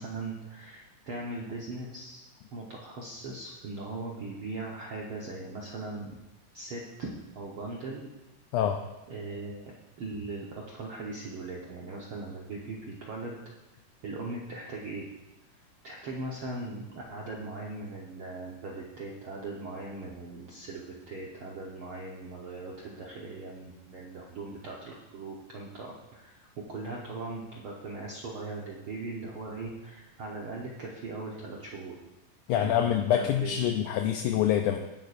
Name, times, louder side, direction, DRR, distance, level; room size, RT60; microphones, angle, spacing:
voice 1, 0.0-2.2 2.5-6.2 6.5-7.1 7.3-8.1 9.1-9.7 10.0-13.4 14.0-15.1 15.8-32.0 32.6-33.6, right 3 dB, 65° right, -3 dB, 1.4 m, -39 dB
voice 2, 32.5-34.8, left 10 dB, 80° left, 5 dB, 1.9 m, -26 dB
17.0 x 10.5 x 2.5 m, 1.0 s
omnidirectional pair, 3.9 m